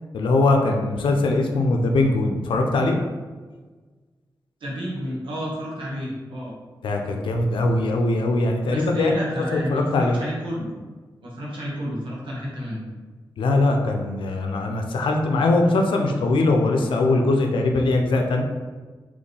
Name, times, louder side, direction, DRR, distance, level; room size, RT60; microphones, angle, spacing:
voice 1, 0.1-3.0 6.8-9.1 9.5-10.2 13.4-18.4, left 2 dB, 90° left, 3 dB, 0.5 m, -21 dB
voice 2, 4.6-6.5 8.7-10.7 11.2-12.8, equal, 85° right, -5 dB, 1.3 m, -30 dB
4.2 x 3.1 x 3.3 m, 1.4 s
cardioid pair, 45°, 8 cm